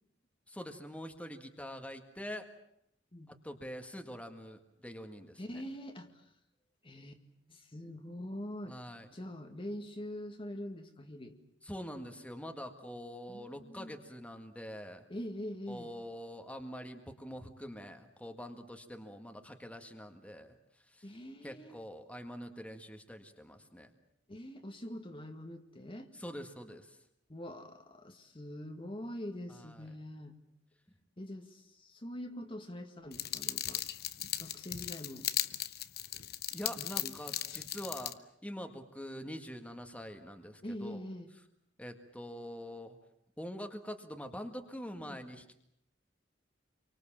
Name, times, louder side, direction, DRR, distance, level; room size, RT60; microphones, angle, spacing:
voice 1, 0.5-2.5 3.3-5.4 8.7-9.1 11.6-15.0 15.7-21.2 21.4-23.9 26.1-27.0 29.5-29.9 36.5-41.0 41.8-43.0 43.4-45.5, equal, 5° left, 5 dB, 1.8 m, -45 dB
voice 2, 5.4-6.3 6.8-7.2 7.5-8.8 9.1-11.4 13.3-13.9 15.1-15.9 21.0-21.7 24.3-26.1 27.3-30.3 31.2-33.8 34.4-35.3 36.8-37.1 40.6-41.3 45.0-45.3, left 1 dB, 30° left, 5 dB, 1.8 m, -44 dB
sound 1, 33.1-38.1, left 12 dB, 55° left, 1.0 m, -37 dB
28.5 x 24.5 x 7.4 m, 0.75 s
head